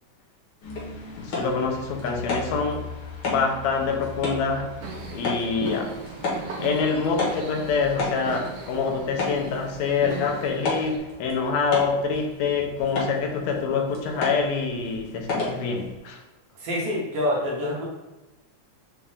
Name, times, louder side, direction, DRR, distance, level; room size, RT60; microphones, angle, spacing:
sound 1, 0.6-16.0, left 3 dB, 55° left, 1.6 m, -33 dB
voice 1, 1.2-2.9 3.3-4.7 5.1-5.9 6.6-16.2, left 5 dB, 75° left, 2 dB, 1.8 m, -26 dB
sound 2, 4.8-11.0, right 4 dB, 85° right, 2.3 m, -38 dB
voice 2, 16.6-17.9, left 1 dB, 65° right, -3 dB, 1.7 m, -26 dB
5.5 x 2.5 x 3.4 m, 1.1 s
omnidirectional pair, 3.5 m